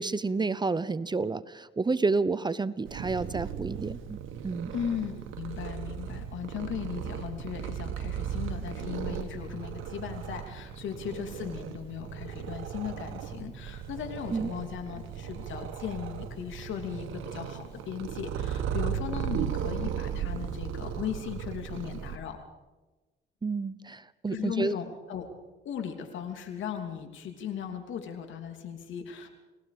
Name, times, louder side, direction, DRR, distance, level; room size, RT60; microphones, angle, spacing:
voice 1, 0.0-4.2 4.4-4.7 14.3-14.5 23.4-24.7, right 4 dB, 20° right, 17 dB, 0.7 m, -30 dB
Purr, 2.8-22.2, right 8 dB, 85° right, 1.6 m, -36 dB
voice 2, 4.7-22.4 24.3-25.3 25.6-29.3, left 8 dB, 75° left, 5 dB, 2.8 m, -37 dB
29.5 x 18.5 x 5.0 m, 1.2 s
cardioid pair, 90°, 20 cm